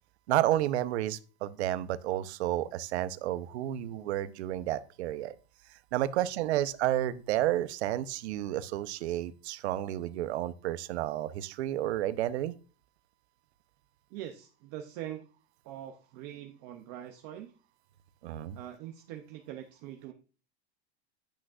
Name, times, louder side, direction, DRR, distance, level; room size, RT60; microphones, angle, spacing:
voice 1, 0.3-5.3 5.9-12.5 18.2-18.6, right 13 dB, 70° right, 13 dB, 0.7 m, -31 dB
voice 2, 14.1-15.3 15.6-17.5 18.5-20.1, right 12 dB, 30° right, 5 dB, 0.5 m, -43 dB
10.0 x 6.2 x 2.4 m, 0.36 s
supercardioid pair, 170°, 34 cm